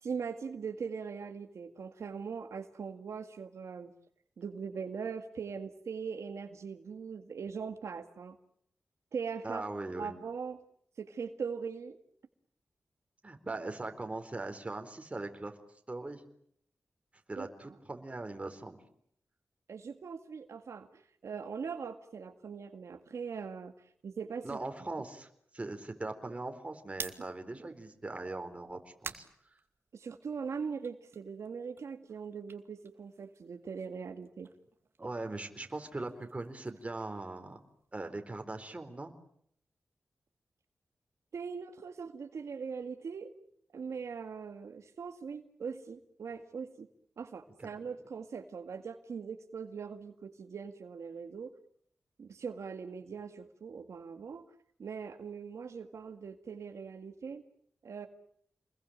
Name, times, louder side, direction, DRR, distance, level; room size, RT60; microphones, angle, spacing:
voice 1, 0.0-3.9 4.4-8.4 9.1-9.6 9.9-10.6 11.0-12.0 17.4-17.8 19.7-23.7 24.0-24.6 29.9-34.5 41.3-43.3 43.7-46.9 47.2-51.5 52.2-54.4 54.8-57.4 57.8-58.1, right 6 dB, 85° right, 6 dB, 1.9 m, -41 dB
voice 2, 9.4-10.1 13.2-15.6 15.9-16.2 17.3-18.8 24.4-25.3 25.5-29.6 35.0-37.6 37.9-39.1 47.6-47.7, right 2 dB, 25° right, 6 dB, 4.0 m, -40 dB
sound 1, 26.8-30.3 30.7-33.7 33.9-38.1, right 4 dB, 55° right, 2.3 m, -50 dB
28.5 x 21.5 x 8.9 m, 0.67 s
wide cardioid pair, 95°, 5 cm